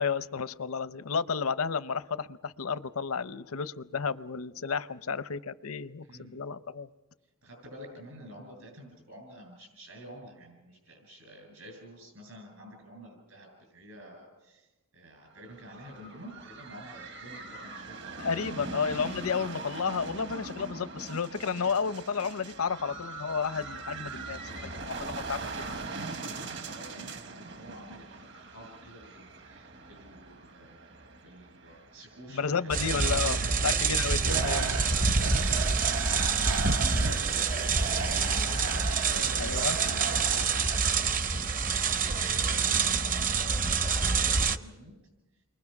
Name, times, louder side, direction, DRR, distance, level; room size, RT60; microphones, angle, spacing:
voice 1, 0.0-6.9 18.2-25.7 32.3-33.4 33.6-34.7 39.4-39.8, left 5 dB, 75° left, 0.7 m, -32 dB
voice 2, 6.0-6.4 7.4-14.7 14.9-18.2 18.5-18.7 25.0-25.9 26.2-33.8 34.6-38.7 38.9-41.5 42.0-44.9, equal, 70° right, 7.9 m, -49 dB
sound 1, 15.4-33.0, right 3 dB, 55° right, 1.2 m, -42 dB
sound 2, 32.7-44.6, right 5 dB, 35° right, 0.7 m, -27 dB
sound 3, 34.2-41.4, right 5 dB, 85° right, 1.0 m, -36 dB
29.0 x 23.0 x 6.0 m
head